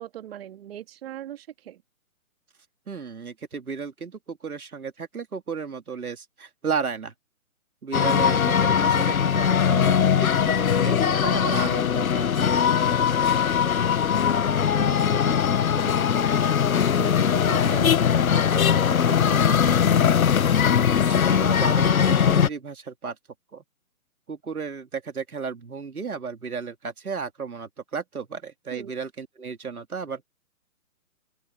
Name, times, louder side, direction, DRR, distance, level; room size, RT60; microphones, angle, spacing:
voice 1, 0.0-1.8 8.0-8.5 14.1-20.5 28.7-28.9, right 11 dB, 45° right, 2.6 m, -40 dB
voice 2, 2.9-7.1 7.8-13.2 21.1-23.2 23.5-23.6 24.3-30.3, right 5 dB, 85° right, 3.5 m, -34 dB
sound 1, 7.9-22.5, left 8 dB, 75° left, 1.3 m, -21 dB
open air
hypercardioid pair, 150°, 43 cm